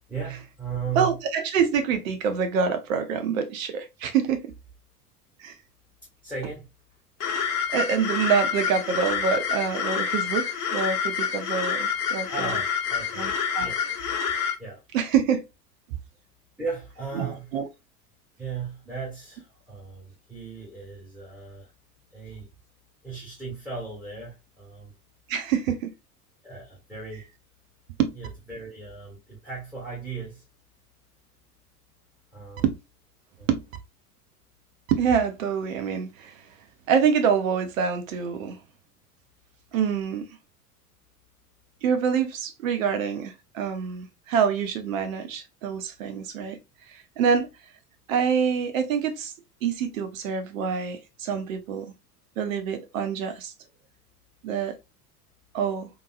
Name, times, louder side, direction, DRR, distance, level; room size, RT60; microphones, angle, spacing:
voice 1, 0.1-1.2 6.2-6.7 12.3-13.3 13.6-13.8 14.3-14.8 16.6-17.5 18.4-21.7 22.1-22.5 23.0-24.9 26.4-27.3 28.1-30.4 32.3-32.6 33.4-33.5, right 5 dB, 5° right, 1.6 m, -36 dB
voice 2, 1.0-4.5 5.4-5.5 7.3-12.5 13.2-13.7 14.9-15.4 17.1-17.7 25.3-25.9 28.0-28.1 32.6-32.7 33.5-33.6 34.9-36.4 36.9-38.6 39.7-40.4 41.8-46.6 46.9-47.5 48.1-49.3 49.6-51.9 52.4-53.5 54.4-54.8 55.5-55.9, right 7 dB, 60° right, 0.8 m, -26 dB
sound 1, 7.2-14.5, left 7 dB, 35° left, 1.1 m, -27 dB
3.6 x 3.0 x 2.4 m
figure-of-eight pair, 85°, 47 cm